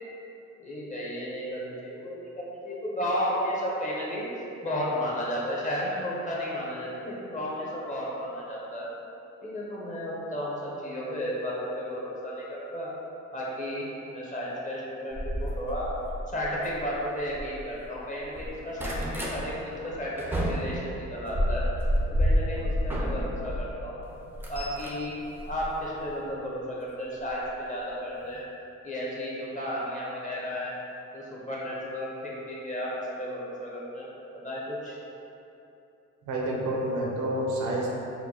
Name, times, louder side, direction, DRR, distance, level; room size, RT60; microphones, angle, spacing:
voice 1, 0.6-4.2 4.6-8.9 9.4-12.9 13.3-15.9 16.3-21.6 22.1-24.0 24.5-25.1 25.5-28.5 28.8-30.7 31.1-32.9 33.2-34.1 34.4-35.0, equal, 25° left, -6 dB, 1.1 m, -33 dB
sound 1, 15.1-17.9 18.2-19.4 19.8-23.6 24.0-26.2 27.3-27.5 27.9-28.0 28.2-28.3, equal, 5° right, 0.6 m, -30 dB
voice 2, 36.3-37.9, right 1 dB, 75° right, -2 dB, 0.8 m, -28 dB
4.5 x 2.2 x 4.1 m, 2.9 s
cardioid pair, 90°, 30 cm